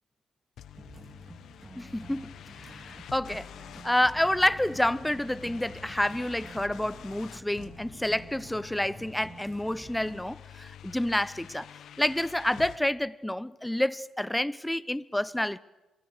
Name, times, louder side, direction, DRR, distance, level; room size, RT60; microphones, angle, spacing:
sound 1, 0.6-12.8, left 10 dB, 65° left, 1.2 m, -48 dB
sound 2, 0.8-10.2, right 2 dB, 20° right, 3.6 m, -49 dB
voice 1, 1.8-3.5 3.8-11.7 12.0-15.6, left 1 dB, 5° left, 0.8 m, -29 dB
26.5 x 25.0 x 6.7 m
supercardioid pair, 60°, 0 cm